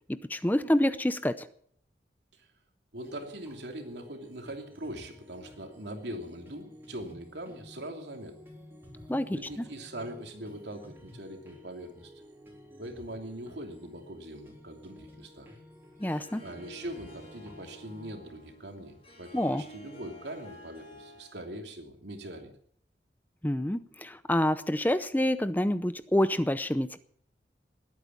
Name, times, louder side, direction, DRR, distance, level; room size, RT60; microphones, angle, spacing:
voice 1, 0.1-1.5 9.1-9.6 16.0-16.4 19.3-19.6 23.4-27.0, left 1 dB, 10° left, 13 dB, 0.6 m, -27 dB
voice 2, 2.9-8.4 9.3-12.1 12.8-15.5 16.4-22.5, right 1 dB, 80° right, 4 dB, 3.0 m, -42 dB
sound 1, 3.0-18.1, equal, 15° right, 3.7 m, -52 dB
Harp, 16.0-21.5, equal, 30° left, 5.8 m, -51 dB
20.5 x 9.2 x 7.3 m, 0.63 s
head